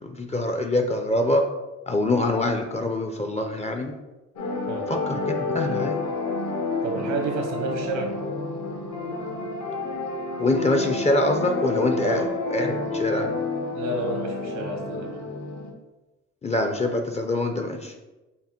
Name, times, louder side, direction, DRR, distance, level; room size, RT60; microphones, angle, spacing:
voice 1, 0.0-1.5 1.9-4.0 4.9-6.0 10.4-13.3 16.4-17.9, left 2 dB, 20° left, 5 dB, 0.5 m, -25 dB
sound 1, 4.4-15.7, left 3 dB, 65° left, 1.0 m, -29 dB
voice 2, 6.8-8.1 12.0-12.3 13.7-15.2, right 3 dB, 90° right, 2 dB, 1.1 m, -30 dB
5.7 x 2.1 x 4.4 m, 1.1 s
cardioid pair, 90°, 30 cm